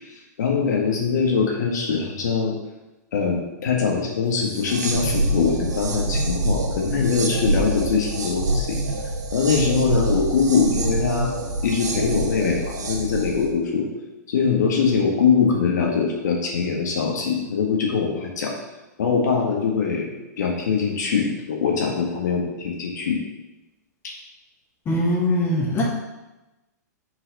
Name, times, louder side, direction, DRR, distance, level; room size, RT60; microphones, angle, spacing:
voice 1, 0.4-2.6 3.1-8.8 9.3-11.4 11.6-13.9 14.3-18.5 19.0-23.2 24.0-24.1, left 5 dB, 75° left, -1 dB, 1.6 m, -22 dB
sound 1, 4.4-13.5, right 2 dB, 85° right, 1.2 m, -26 dB
voice 2, 24.8-25.8, left 1 dB, 25° left, -2 dB, 1.6 m, -21 dB
5.4 x 4.1 x 5.2 m, 1.0 s
hypercardioid pair, 125°, 9 cm